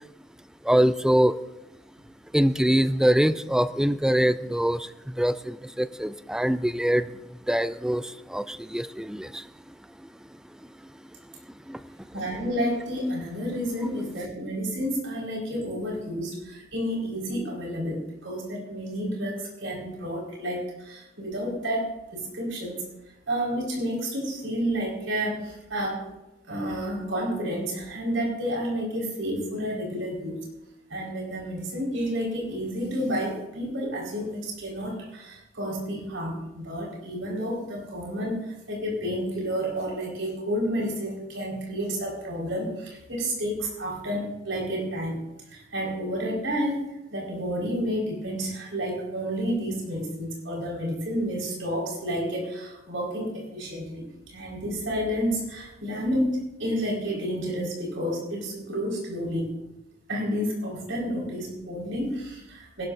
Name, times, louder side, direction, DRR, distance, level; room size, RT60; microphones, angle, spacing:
voice 1, 0.6-1.3 2.3-7.1 7.5-9.5 11.7-11.8, equal, 5° right, 13 dB, 0.3 m, -24 dB
voice 2, 12.1-22.9 23.3-26.1 26.5-30.4 30.9-45.2 45.5-59.5 60.1-62.9, equal, 85° right, -2 dB, 4.8 m, -30 dB
21.0 x 12.0 x 2.6 m, 0.95 s
head